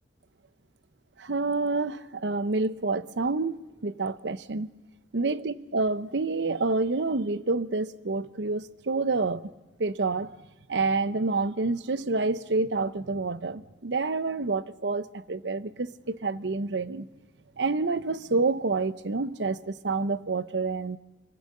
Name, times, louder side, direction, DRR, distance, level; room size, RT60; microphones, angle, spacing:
voice 1, 1.2-4.7 5.1-9.5 9.8-10.3 10.7-17.1 17.6-21.0, right 3 dB, 70° right, 0.8 m, -28 dB
24.5 x 24.0 x 6.6 m
head